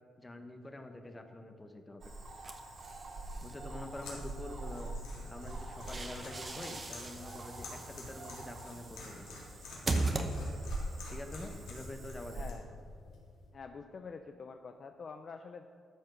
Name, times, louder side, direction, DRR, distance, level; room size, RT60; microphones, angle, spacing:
voice 1, 0.2-2.0 3.4-4.9 5.3-9.3 11.1-12.5, left 2 dB, 15° left, 6 dB, 1.0 m, -46 dB
Cricket / Frog, 2.0-12.5, right 2 dB, 45° right, 2.6 m, -45 dB
sound 1, 2.4-3.5 5.5-10.9, right 2 dB, 25° right, 1.0 m, -39 dB
sound 2, 3.9-13.5, left 2 dB, 75° left, 3.6 m, -50 dB
voice 2, 12.3-12.7 13.5-15.7, left 5 dB, 40° left, 7 dB, 0.5 m, -46 dB
12.5 x 7.3 x 6.4 m, 2.3 s
cardioid pair, 135°, 0 cm